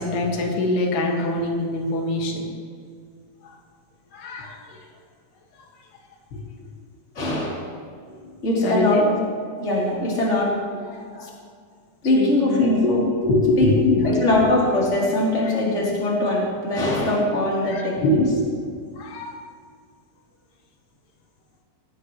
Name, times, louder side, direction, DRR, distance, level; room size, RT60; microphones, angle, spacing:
voice 1, 0.0-2.5 3.4-3.5 4.1-4.9 6.3-6.4 8.1-8.3 8.6-9.1 10.9-11.3 12.2-14.5 15.4-15.6 17.6-19.4, left 1 dB, 90° left, 0 dB, 4.0 m, -24 dB
voice 2, 7.2-7.7 8.4-9.2 9.6-10.6 11.2-11.3 12.0-13.1 13.6-18.2, left 1 dB, 20° left, -4 dB, 3.4 m, -21 dB
18.5 x 17.5 x 3.2 m, 2.1 s
omnidirectional pair, 4.5 m